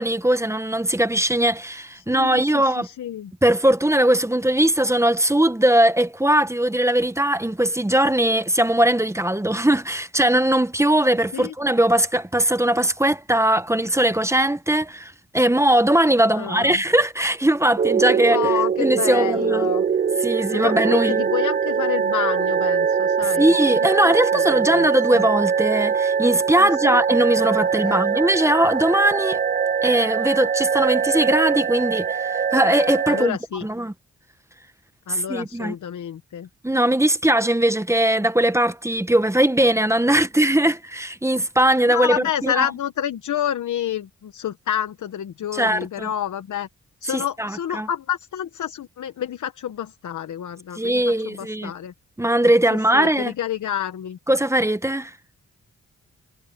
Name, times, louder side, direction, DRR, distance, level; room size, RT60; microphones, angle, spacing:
voice 1, 0.0-2.9 3.4-18.5 18.8-19.7 20.2-21.2 23.2-29.4 29.8-33.9 35.1-35.7 36.6-42.7 45.5-46.1 47.1-47.9 50.8-51.7 52.2-53.3 54.3-55.1, right 1 dB, 10° right, 1.0 m, -20 dB
voice 2, 2.0-3.3 11.3-11.5 16.3-16.8 18.3-19.8 20.5-23.5 23.8-24.5 24.7-25.2 26.6-27.0 27.8-28.2 33.1-33.7 35.1-36.5 41.8-46.7 47.0-51.9 52.7-54.2, left 10 dB, 75° left, 1.1 m, -29 dB
sound 1, 17.8-33.3, right 6 dB, 30° right, 0.4 m, -22 dB
cardioid pair, 85°, 30 cm